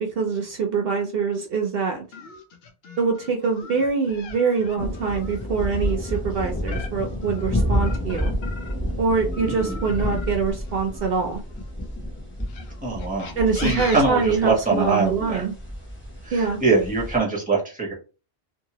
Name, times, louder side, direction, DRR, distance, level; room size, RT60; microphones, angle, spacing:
voice 1, 0.0-2.0 3.0-8.3 9.0-11.4 13.4-15.5 16.3-16.6, right 5 dB, 65° right, 3 dB, 0.7 m, -24 dB
sound 1, 2.1-8.9 9.3-11.7 12.4-15.0, left 4 dB, 70° left, 0.9 m, -40 dB
sound 2, 4.8-17.2, equal, 10° left, 0.8 m, -30 dB
voice 2, 9.5-9.8 12.8-15.4 16.2-17.9, right 3 dB, 10° right, -3 dB, 1.1 m, -23 dB
2.8 x 2.5 x 2.8 m, 0.32 s
omnidirectional pair, 1.1 m